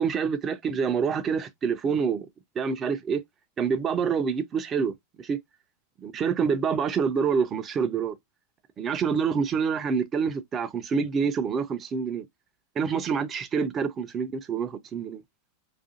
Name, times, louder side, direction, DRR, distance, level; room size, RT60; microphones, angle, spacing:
voice 1, 0.0-2.3 2.6-3.2 3.6-4.9 5.2-5.4 6.0-8.1 8.8-12.3 12.8-15.2, right 6 dB, 25° right, 0.4 m, -27 dB
2.5 x 2.3 x 2.5 m
figure-of-eight pair, 90°, 0 cm